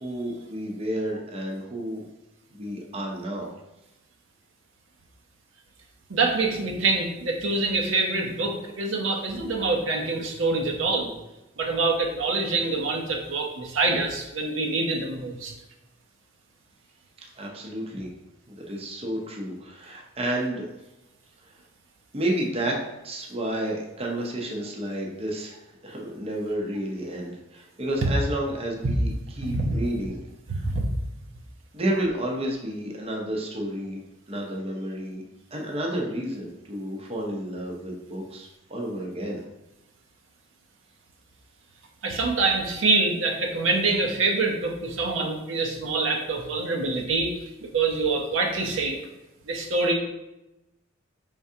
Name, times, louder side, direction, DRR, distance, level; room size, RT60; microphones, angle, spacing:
voice 1, 0.0-2.0 2.5-3.5 17.4-18.1 18.5-20.7 22.1-22.8 23.0-29.1 29.4-30.2 30.5-30.7 31.7-34.0 34.3-35.2 35.5-39.4, right 1 dB, 30° right, -1 dB, 0.6 m, -31 dB
voice 2, 6.1-11.1 11.6-15.5 28.8-28.9 29.4-29.8 30.5-30.9 42.0-47.3 47.6-49.0 49.5-49.9, right 3 dB, 75° right, 1 dB, 0.7 m, -25 dB
4.5 x 3.6 x 2.7 m, 0.95 s
head